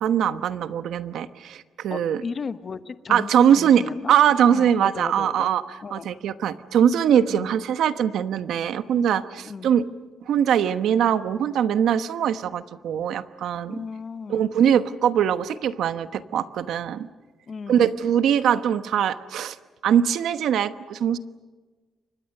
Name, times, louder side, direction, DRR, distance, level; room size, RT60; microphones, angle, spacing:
voice 1, 0.0-2.2 3.1-3.8 4.1-5.6 5.9-9.9 10.3-13.8 14.3-17.1 17.7-19.6 19.8-21.2, right 9 dB, 85° right, 11 dB, 1.1 m, -22 dB
voice 2, 1.9-4.1 4.5-5.5 5.8-6.1 7.3-7.5 9.4-9.7 13.7-14.5 17.5-17.9, left 5 dB, 35° left, 11 dB, 1.1 m, -35 dB
29.5 x 25.0 x 6.7 m, 1.3 s
cardioid pair, 145°, 0 cm